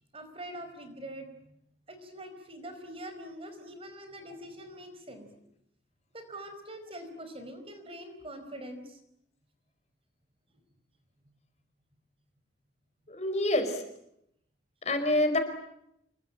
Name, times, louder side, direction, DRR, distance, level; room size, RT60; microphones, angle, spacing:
voice 1, 0.1-1.5 1.9-5.3 6.1-9.0, right 1 dB, 30° right, 8 dB, 4.7 m, -44 dB
voice 2, 13.1-13.8 14.8-15.4, left 1 dB, 40° left, 7 dB, 4.9 m, -26 dB
28.0 x 23.5 x 9.0 m, 0.77 s
head